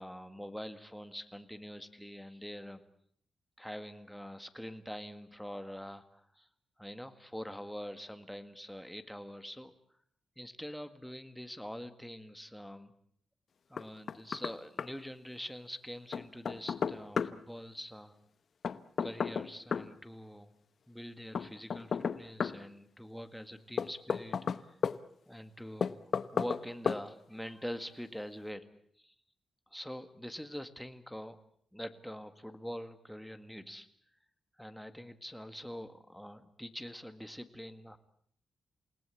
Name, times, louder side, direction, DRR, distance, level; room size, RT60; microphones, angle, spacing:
voice 1, 0.0-2.8 3.6-6.5 6.8-9.7 10.4-12.9 13.7-18.2 19.0-20.5 20.9-24.4 25.3-25.9 26.3-28.7 29.0-29.1 29.7-31.4 31.7-33.9 34.6-38.0, equal, ahead, 9 dB, 1.8 m, -44 dB
Knock, 13.8-14.5 14.8-14.9 16.1-17.3 18.6-19.9 21.3-22.6 23.8-25.0 25.8-26.6 26.9-27.0, left 6 dB, 50° left, 1.0 m, -33 dB
29.0 x 18.5 x 8.4 m, 0.65 s
wide cardioid pair, 125°, 0 cm